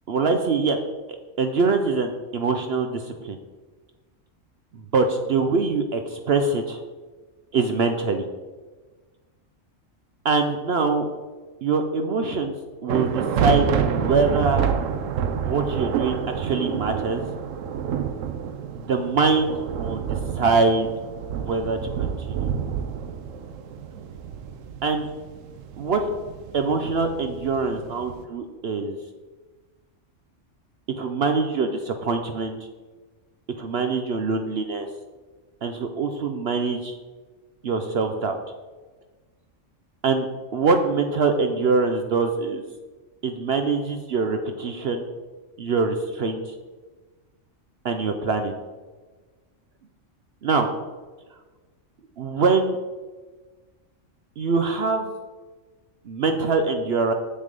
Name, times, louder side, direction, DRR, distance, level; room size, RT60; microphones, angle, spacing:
voice 1, 0.1-0.8 1.4-3.4 4.7-6.8 7.5-8.3 10.2-11.1 11.6-12.5 12.8-14.7 15.4-17.2 18.7-20.0 20.4-20.9 21.3-22.5 24.8-25.1 25.8-26.1 26.5-29.0 31.0-32.6 33.6-34.9 35.6-37.0 37.6-38.4 40.0-40.3 40.5-42.6 43.2-45.0 45.6-46.5 47.8-48.5 50.4-50.7 52.2-52.8 54.4-55.1 56.1-57.1, right 4 dB, 60° right, 6 dB, 0.8 m, -24 dB
sound 1, 12.9-28.2, right 8 dB, 80° right, 1.1 m, -28 dB
7.5 x 6.8 x 5.2 m, 1.3 s
omnidirectional pair, 1.3 m